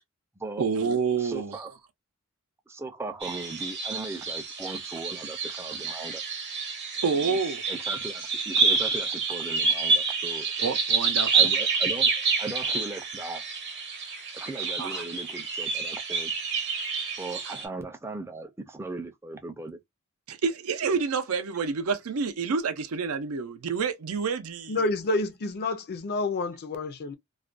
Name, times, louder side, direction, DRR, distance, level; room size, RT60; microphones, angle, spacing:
voice 1, 0.6-1.6 7.0-7.6 10.6-11.5 14.8-15.0 17.5-17.6 20.3-24.8, right 5 dB, 85° right, 0.5 m, -28 dB
voice 2, 1.2-1.8 2.7-6.2 7.1-7.4 7.7-10.8 11.3-12.1 12.4-13.4 14.3-16.3 17.2-19.8, right 2 dB, 10° right, 0.4 m, -38 dB
sound 1, 3.2-17.7, right 4 dB, 55° right, 0.8 m, -28 dB
voice 3, 24.7-27.1, left 2 dB, 50° left, 0.4 m, -29 dB
2.4 x 2.1 x 2.4 m
head